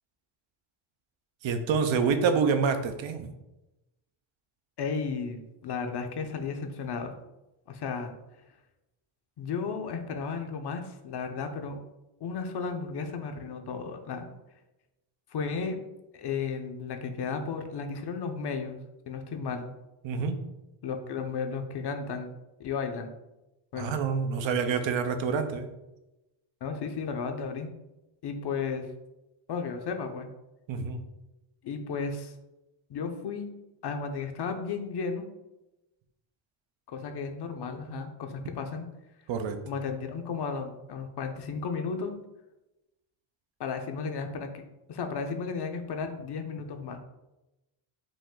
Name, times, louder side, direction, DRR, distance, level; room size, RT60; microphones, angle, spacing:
voice 1, 1.4-3.3 20.0-20.4 23.8-25.7 30.7-31.0 39.3-39.6, right 5 dB, 65° right, 8 dB, 0.7 m, -27 dB
voice 2, 4.8-7.2 7.7-8.1 9.4-11.8 12.2-14.3 15.3-15.8 16.1-18.8 19.1-19.7 20.8-22.3 22.6-23.1 23.7-23.9 26.6-27.7 28.2-28.9 29.5-30.3 31.6-32.3 32.9-33.5 33.8-35.3 36.9-38.9 39.7-42.2 43.6-44.6 44.9-47.0, left 5 dB, 55° left, 5 dB, 0.7 m, -34 dB
5.2 x 2.6 x 3.7 m, 0.96 s
cardioid pair, 105°, 50 cm